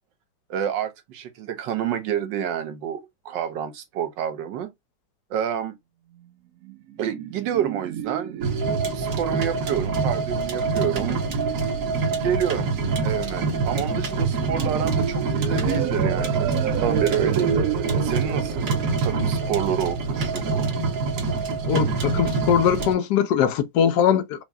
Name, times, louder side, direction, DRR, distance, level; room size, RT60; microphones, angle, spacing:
voice 1, 0.5-4.7 5.3-5.8 7.0-8.5 8.9-11.2 12.2-12.7 13.0-17.6 18.0-18.7 19.0-20.7, right 9 dB, 70° right, 1.3 m, -28 dB
sound 1, 6.6-20.6, right 9 dB, 85° right, 0.8 m, -32 dB
sound 2, 8.4-22.9, right 4 dB, 50° right, 1.1 m, -25 dB
voice 2, 21.7-24.4, left 8 dB, 75° left, 1.0 m, -21 dB
4.7 x 2.1 x 2.6 m
omnidirectional pair, 2.2 m